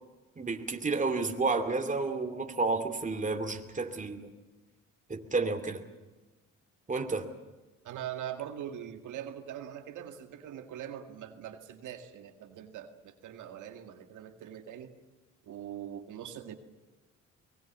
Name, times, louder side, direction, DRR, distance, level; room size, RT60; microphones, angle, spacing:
voice 1, 0.4-4.3 5.1-5.8 6.9-7.3, right 3 dB, 25° right, 2.7 m, -31 dB
voice 2, 7.8-14.9 15.4-16.6, right 10 dB, 80° right, 2.0 m, -42 dB
23.5 x 21.0 x 7.4 m
cardioid pair, 90°, 30 cm